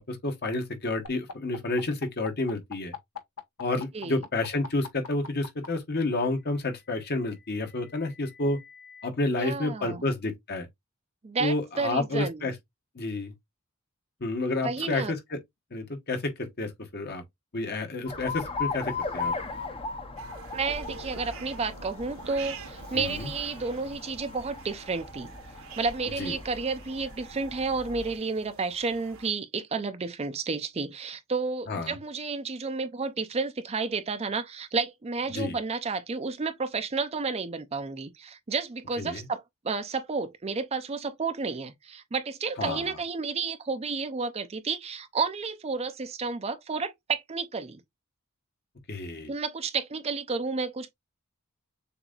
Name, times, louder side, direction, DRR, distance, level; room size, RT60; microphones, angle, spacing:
voice 1, 0.0-2.9 3.6-8.6 9.0-10.7 11.4-12.5 12.9-13.3 14.2-15.4 15.7-17.2 17.5-19.3 22.9-23.3 26.2-26.4 31.7-31.9 35.3-35.6 39.0-39.2 42.6-42.8 48.9-49.3, left 2 dB, 45° left, 1.1 m, -30 dB
sound 1, 1.0-5.7 6.8-9.1, left 6 dB, 75° left, 1.0 m, -43 dB
voice 2, 9.3-10.0 11.2-12.5 14.6-15.1 20.5-25.3 25.8-47.8 49.3-50.9, right 4 dB, 30° right, 0.5 m, -31 dB
Alarm, 18.1-28.2, left 4 dB, 25° left, 0.7 m, -38 dB
ambience scary jungle, 20.2-29.3, right 5 dB, 65° right, 1.0 m, -46 dB
6.9 x 2.7 x 2.4 m
head